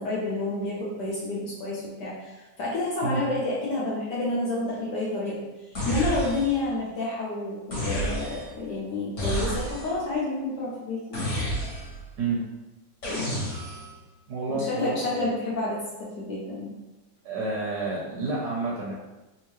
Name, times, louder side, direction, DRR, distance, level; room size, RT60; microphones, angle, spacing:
voice 1, 0.0-5.4 5.8-11.2 14.5-16.7, left 2 dB, 65° left, -6 dB, 1.2 m, -29 dB
sound 1, 5.7-6.7 7.7-8.6 9.2-10.0 11.1-12.1 13.0-13.9, equal, 45° left, 1.4 m, -30 dB
voice 2, 14.3-15.3 17.2-18.9, right 3 dB, 70° right, -4 dB, 1.1 m, -29 dB
3.5 x 2.7 x 3.0 m, 1.1 s
omnidirectional pair, 2.2 m